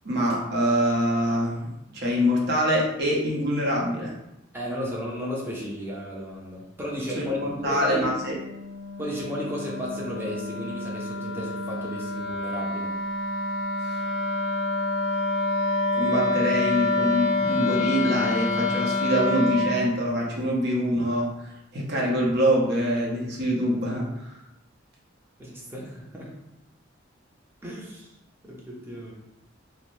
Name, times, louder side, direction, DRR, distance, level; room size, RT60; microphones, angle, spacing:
voice 1, 0.0-1.7 1.9-4.1 7.2-8.3 13.8-14.0 15.9-21.3 21.7-24.1, equal, 55° right, -3 dB, 0.6 m, -24 dB
voice 2, 4.5-8.2 9.0-12.9 25.4-26.3 27.6-28.1 28.4-29.1, left 1 dB, 10° right, -4 dB, 0.5 m, -34 dB
Wind instrument woodwind instrument, 6.9-19.8, left 2 dB, 65° left, 0.5 m, -28 dB
2.5 x 2.0 x 3.0 m, 0.88 s
head